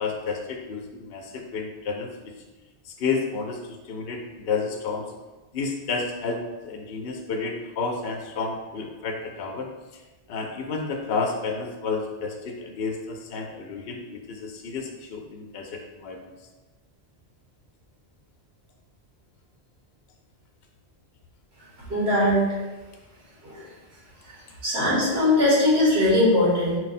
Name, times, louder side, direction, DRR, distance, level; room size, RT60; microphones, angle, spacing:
voice 1, 0.0-2.3 2.8-5.1 5.5-9.7 10.3-16.3, left 4 dB, 70° left, 2 dB, 0.8 m, -31 dB
voice 2, 21.9-22.4 23.4-23.6 24.6-26.8, left 1 dB, 80° right, -6 dB, 1.6 m, -20 dB
4.5 x 2.0 x 4.1 m, 1.2 s
omnidirectional pair, 1.1 m